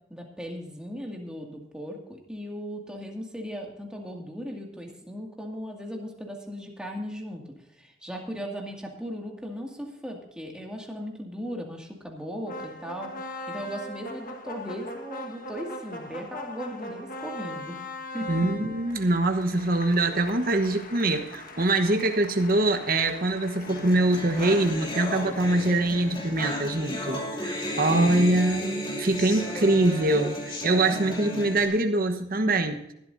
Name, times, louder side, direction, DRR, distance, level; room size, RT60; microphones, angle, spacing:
voice 1, 0.1-13.1 13.5-17.8 18.1-18.5 27.9-28.5 29.5-29.7 31.0-31.7, equal, 5° right, 0 dB, 2.1 m, -37 dB
sound 1, 12.5-26.6, left 1 dB, 45° left, 1.5 m, -40 dB
voice 2, 18.3-32.8, right 2 dB, 50° right, 6 dB, 1.1 m, -24 dB
sound 2, 23.7-31.7, left 1 dB, 25° left, 2.5 m, -34 dB
19.0 x 12.5 x 2.7 m, 0.83 s
head